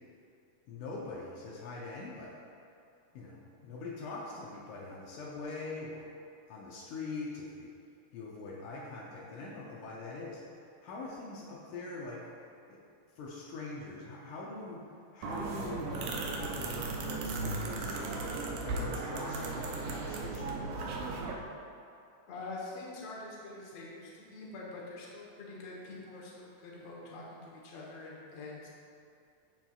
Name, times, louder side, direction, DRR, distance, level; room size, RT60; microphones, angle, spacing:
voice 1, 0.7-2.3 3.1-6.1 6.5-7.7 8.1-10.4 10.8-12.2 12.7-12.8 13.2-14.8 15.1-18.3 18.6-20.6, left 3 dB, 80° left, -4 dB, 2.3 m, -43 dB
sound 1, 15.2-21.3, right 3 dB, 80° right, 2.1 m, -36 dB
voice 2, 22.3-28.7, left 2 dB, 65° left, -4 dB, 2.2 m, -45 dB
13.0 x 4.5 x 2.3 m, 2.5 s
omnidirectional pair, 3.6 m